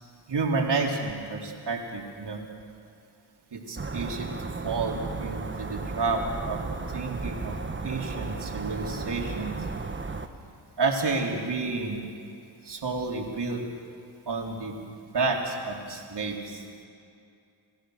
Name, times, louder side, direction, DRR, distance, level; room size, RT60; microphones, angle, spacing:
voice 1, 0.3-2.4 3.5-4.3 4.6-6.6 6.9-7.6 7.8-9.5 10.8-12.1 12.6-13.6 14.3-14.8 15.1-16.6, right 3 dB, 55° right, 0 dB, 3.7 m, -30 dB
sound 1, 3.8-10.3, right 3 dB, 25° right, 1.4 m, -34 dB
28.5 x 14.5 x 6.5 m, 2.4 s
cardioid pair, 60°, 49 cm